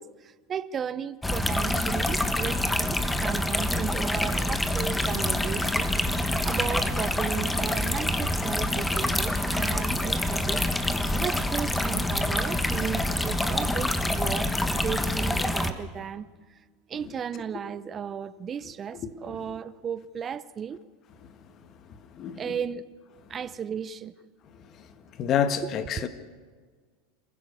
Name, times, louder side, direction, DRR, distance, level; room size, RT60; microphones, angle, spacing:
voice 1, 0.0-5.9 6.2-16.3 16.9-20.8 22.4-22.8 23.3-24.1 26.0-26.1, right 7 dB, 30° right, 0.7 m, -35 dB
sound 1, 1.2-15.7, left 1 dB, 5° left, 1.4 m, -26 dB
voice 2, 18.9-19.6 22.1-22.6 24.5-24.9 25.1-26.1, left 8 dB, 40° left, 1.7 m, -30 dB
27.5 x 15.5 x 6.8 m
supercardioid pair, 110°, 0 cm